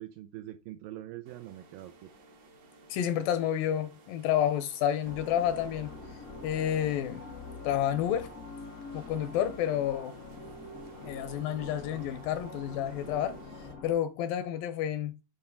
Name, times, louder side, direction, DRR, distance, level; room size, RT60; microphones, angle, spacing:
voice 1, 0.0-2.1, right 14 dB, 80° right, 2.1 m, -43 dB
sound 1, 1.2-13.7, right 2 dB, 55° right, 1.3 m, -55 dB
voice 2, 2.9-5.9 6.4-7.2 7.6-8.3 8.9-10.1 11.0-13.4 13.8-15.2, left 10 dB, 80° left, 2.2 m, -30 dB
sound 2, 5.0-13.9, left 3 dB, 50° left, 0.9 m, -45 dB
8.9 x 3.4 x 5.6 m
omnidirectional pair, 4.4 m